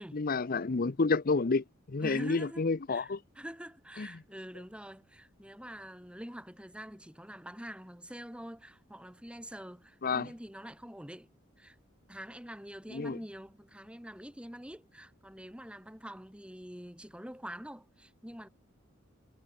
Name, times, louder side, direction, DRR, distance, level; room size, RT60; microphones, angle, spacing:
voice 1, 0.1-3.2 4.0-4.1 10.0-10.3 12.9-13.2, left 4 dB, 45° left, 0.7 m, -30 dB
voice 2, 2.0-11.3 11.6-11.8 12.1-18.5, equal, 5° right, 4.3 m, -46 dB
head